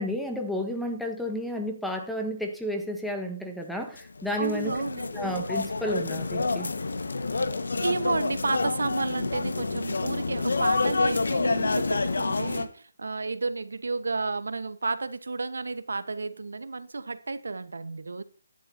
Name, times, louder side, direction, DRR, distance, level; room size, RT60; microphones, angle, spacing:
voice 1, 0.0-4.8 5.1-6.7, equal, ahead, 4 dB, 0.9 m, -31 dB
sound 1, 4.0-12.7, left 3 dB, 75° left, 1.4 m, -28 dB
voice 2, 4.4-5.3 7.7-18.2, right 3 dB, 75° right, 12 dB, 1.1 m, -32 dB
13.0 x 11.0 x 2.8 m, 0.42 s
hypercardioid pair, 160°, 0 cm